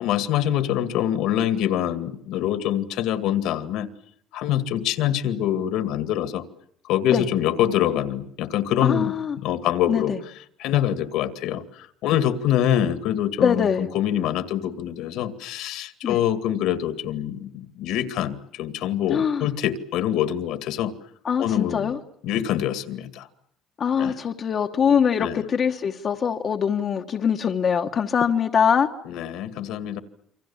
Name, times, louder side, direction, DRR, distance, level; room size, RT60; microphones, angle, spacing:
voice 1, 0.0-3.9 4.3-6.4 6.9-9.1 9.4-10.1 10.6-20.9 21.4-21.9 22.2-23.3 24.0-24.1 25.2-25.4 29.1-30.0, left 11 dB, 70° left, 11 dB, 2.1 m, -25 dB
voice 2, 8.8-9.4 9.9-10.2 13.4-13.9 16.0-16.2 19.1-19.5 21.2-22.0 23.8-28.9, left 7 dB, 30° left, 5 dB, 1.1 m, -23 dB
28.0 x 25.5 x 7.2 m, 0.67 s
cardioid pair, 175°, 0 cm